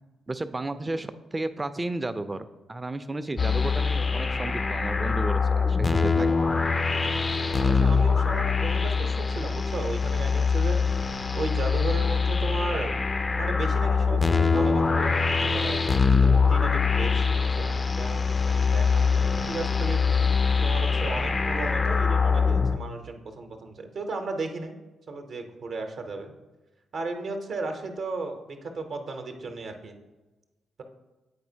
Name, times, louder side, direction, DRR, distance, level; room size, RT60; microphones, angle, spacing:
voice 1, 0.3-6.3, right 2 dB, 25° right, 11 dB, 0.4 m, -33 dB
sound 1, 3.4-22.8, left 5 dB, 35° left, 0.4 m, -23 dB
voice 2, 7.1-13.0 13.4-20.0 20.6-24.8 25.1-26.3 26.9-30.0, right 3 dB, 60° right, 5 dB, 0.8 m, -35 dB
8.5 x 4.2 x 2.7 m, 1.1 s
hypercardioid pair, 40°, 0 cm